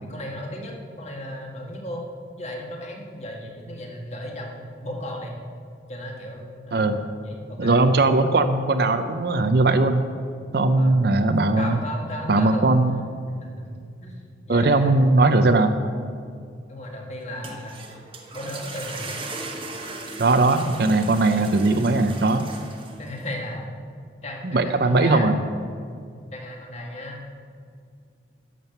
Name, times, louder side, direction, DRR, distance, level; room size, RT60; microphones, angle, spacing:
voice 1, 0.0-2.1 2.4-5.4 5.9-7.8 10.7-10.9 11.5-12.6 13.4-14.9 16.7-17.8 18.3-19.1 23.0-23.7 24.2-25.3 26.3-27.2, left 1 dB, 35° left, 0 dB, 1.8 m, -35 dB
voice 2, 7.6-10.0 10.5-11.8 12.3-13.0 14.5-15.8 20.2-22.5 24.5-25.4, right 2 dB, 55° right, 8 dB, 0.6 m, -19 dB
sound 1, 17.2-23.3, right 3 dB, 30° right, 1.2 m, -38 dB
11.5 x 7.5 x 6.8 m, 2.3 s
head